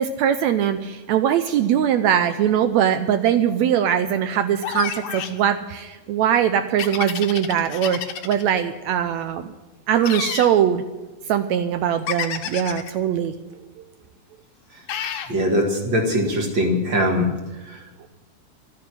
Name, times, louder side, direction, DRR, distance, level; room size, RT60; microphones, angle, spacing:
voice 1, 0.0-9.5 9.9-10.8 11.3-13.3, right 9 dB, 80° right, 10 dB, 1.6 m, -21 dB
sound 1, 4.6-5.4 6.8-8.5 10.0-10.5 12.1-12.9 14.9-15.3, left 9 dB, 70° left, 2.4 m, -29 dB
voice 2, 15.3-17.3, equal, 40° right, 2 dB, 2.3 m, -21 dB
13.5 x 9.6 x 9.7 m, 1.2 s
omnidirectional pair, 3.8 m